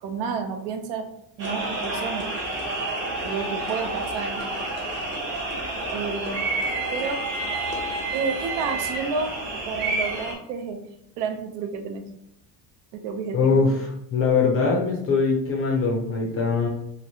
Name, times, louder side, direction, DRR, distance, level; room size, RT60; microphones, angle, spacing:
voice 1, 0.0-1.1 1.4-2.3 3.2-4.4 5.9-6.4 6.9-7.2 8.1-9.4 9.7-10.9 11.2-12.0 12.9-13.5, right 5 dB, 85° right, 4 dB, 0.7 m, -30 dB
sound 1, 1.4-10.3, right 2 dB, 25° right, 0.5 m, -29 dB
voice 2, 13.3-13.8 14.1-16.7, left 4 dB, 30° left, 0 dB, 0.4 m, -22 dB
3.0 x 2.6 x 2.7 m, 0.79 s
cardioid pair, 165°, 46 cm